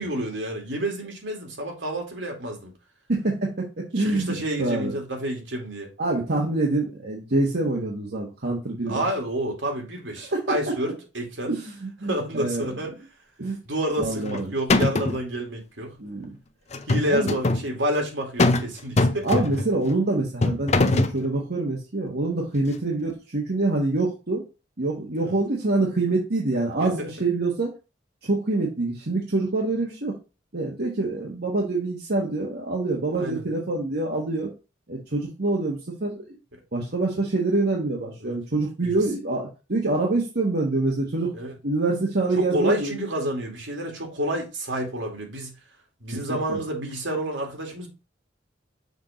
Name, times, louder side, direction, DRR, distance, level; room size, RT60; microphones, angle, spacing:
voice 1, 0.0-2.7 4.0-5.9 8.9-11.5 12.0-12.9 13.6-15.9 16.9-19.3 25.1-25.4 26.8-27.1 33.1-33.4 38.2-38.4 38.8-39.0 41.3-41.5 42.5-45.5 46.0-47.9, right 1 dB, 75° right, 2.4 m, -29 dB
voice 2, 3.1-5.0 6.0-9.0 10.2-10.7 11.5-12.7 13.4-13.6 14.0-14.6 16.0-16.3 17.1-17.4 19.2-24.4 24.8-27.7 28.2-30.1 30.5-34.5 34.9-36.4 36.7-41.3 41.6-43.0 46.3-46.6, right 2 dB, 55° right, 1.4 m, -26 dB
sound 1, 14.0-14.4 14.7-15.2 16.7-17.6 18.4-18.7 19.0-19.7 20.4-21.2, left 2 dB, 35° left, 0.6 m, -21 dB
6.6 x 3.6 x 5.0 m
head